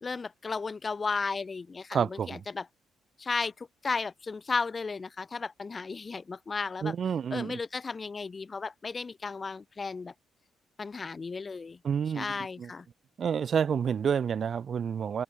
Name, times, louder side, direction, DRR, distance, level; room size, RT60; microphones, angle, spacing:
voice 1, 0.0-2.7 3.2-6.9 7.3-10.1 10.8-11.8 12.1-12.9, left 4 dB, 30° left, 0.7 m, -34 dB
voice 2, 1.9-2.4 6.8-7.6 11.8-12.3 12.6-12.7 13.2-15.2, right 7 dB, 50° right, 0.4 m, -29 dB
cardioid pair, 90°, 0 cm